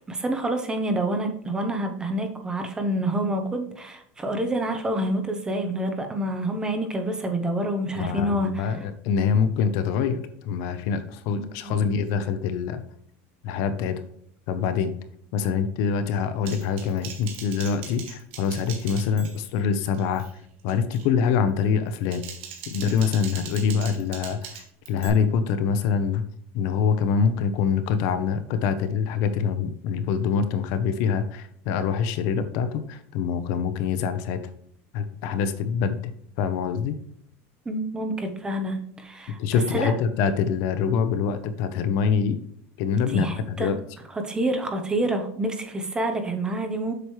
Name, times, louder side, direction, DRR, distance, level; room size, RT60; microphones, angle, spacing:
voice 1, 0.1-8.6 11.6-11.8 37.7-39.9 43.1-43.7 44.2-46.9, right 1 dB, 10° right, 5 dB, 0.9 m, -27 dB
voice 2, 7.9-12.8 13.4-14.0 14.5-14.9 15.3-20.2 20.6-22.2 22.7-26.2 26.5-34.4 34.9-36.1 36.4-37.0 39.4-42.4 42.8-43.8, left 6 dB, 55° left, 10 dB, 0.8 m, -25 dB
Typing, 16.5-19.6 19.9-20.3 20.7-21.1 21.9-25.1, right 7 dB, 70° right, 2.2 m, -40 dB
7.8 x 6.2 x 3.2 m, 0.68 s
supercardioid pair, 160°, 7 cm